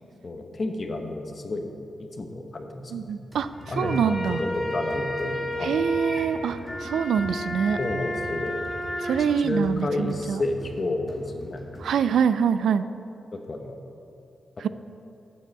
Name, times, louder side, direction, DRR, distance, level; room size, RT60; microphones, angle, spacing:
voice 1, 0.2-1.7 2.0-3.1 3.7-5.8 7.8-8.6 9.4-11.6 13.3-13.8, left 2 dB, 40° left, 5 dB, 1.0 m, -31 dB
voice 2, 2.9-3.5 3.8-4.4 5.6-7.8 9.0-10.4 11.8-12.9 14.6-14.7, right 7 dB, 85° right, 13 dB, 0.3 m, -25 dB
sound 1, 3.3-12.2, equal, 15° right, 2.1 m, -44 dB
sound 2, 3.5-9.1, equal, 5° left, 2.1 m, -32 dB
sound 3, 3.9-5.7, left 4 dB, 80° left, 0.5 m, -41 dB
7.4 x 6.9 x 7.7 m, 2.7 s
cardioid pair, 95°, 0 cm